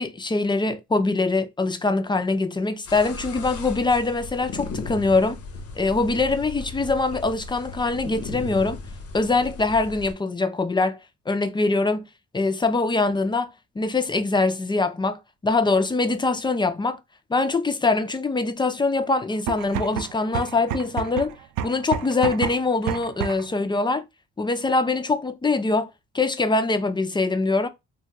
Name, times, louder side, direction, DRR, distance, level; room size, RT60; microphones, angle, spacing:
voice 1, 0.0-5.4 5.8-8.8 9.1-11.0 11.3-12.0 12.3-17.0 17.3-21.4 21.6-24.0 24.4-25.9 26.1-27.7, left 3 dB, 15° left, 0.4 m, -23 dB
sound 1, 2.9-10.1, left 3 dB, 50° left, 0.7 m, -36 dB
sound 2, 19.3-23.6, right 10 dB, 75° right, 0.5 m, -30 dB
2.3 x 2.3 x 4.0 m
cardioid pair, 90°, 30 cm